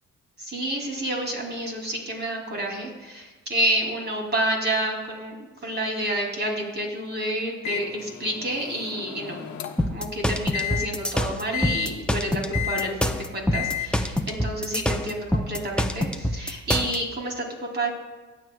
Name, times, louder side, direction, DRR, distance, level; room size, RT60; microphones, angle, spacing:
voice 1, 0.4-5.3 5.6-9.5 9.9-17.9, right 1 dB, 35° right, 0 dB, 2.9 m, -29 dB
Microwave oven, 7.6-10.0 10.5-10.9 11.5-11.9 12.5-12.9 13.5-13.9, left 12 dB, 65° left, 1.0 m, -32 dB
sound 1, 9.8-17.0, left 1 dB, 5° left, 0.6 m, -25 dB
18.0 x 7.7 x 2.3 m, 1.3 s
cardioid pair, 90°, 30 cm